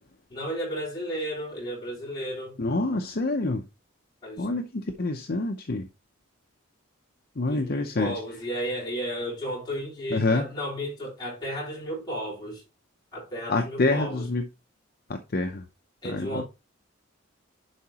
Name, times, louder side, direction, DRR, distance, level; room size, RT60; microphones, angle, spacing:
voice 1, 0.3-2.6 4.2-4.5 7.5-12.6 13.1-14.3 16.0-16.4, equal, 20° left, 3.9 m, -33 dB
voice 2, 2.6-3.6 4.4-5.9 7.4-8.2 10.1-10.4 13.5-14.4 15.1-15.6 16.0-16.4, left 2 dB, 45° left, 0.7 m, -27 dB
10.5 x 4.7 x 2.9 m
head